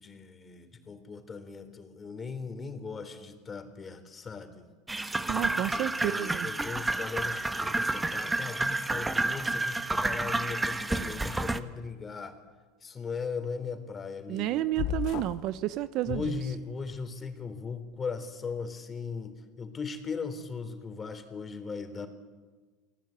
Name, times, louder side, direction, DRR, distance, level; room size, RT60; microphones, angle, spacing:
voice 1, 0.0-4.7 5.7-12.4 12.8-14.6 16.1-22.1, left 5 dB, 25° left, 8 dB, 3.7 m, -38 dB
sound 1, 4.9-11.6, right 2 dB, 10° right, 1.3 m, -30 dB
voice 2, 5.3-6.5 14.3-16.3, right 14 dB, 55° right, 14 dB, 1.0 m, -31 dB
sound 2, 14.8-15.5 16.0-17.0, left 13 dB, 55° left, 1.2 m, -35 dB
29.0 x 19.0 x 9.0 m, 1.4 s
supercardioid pair, 110°, 0 cm